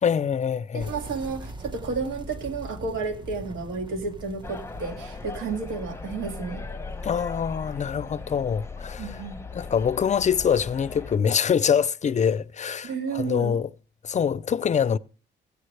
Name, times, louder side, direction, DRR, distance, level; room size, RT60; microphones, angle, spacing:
voice 1, 0.0-0.9 7.0-9.2 9.5-13.7 14.0-15.0, left 7 dB, 35° left, 0.5 m, -24 dB
voice 2, 0.7-6.7 9.0-9.4 12.8-13.6, right 4 dB, 80° right, 2.2 m, -32 dB
sound 1, 0.8-8.5, right 1 dB, 25° right, 1.4 m, -43 dB
sound 2, 4.4-11.2, left 4 dB, 15° left, 0.8 m, -38 dB
16.0 x 8.3 x 3.3 m
cardioid pair, 90°, 20 cm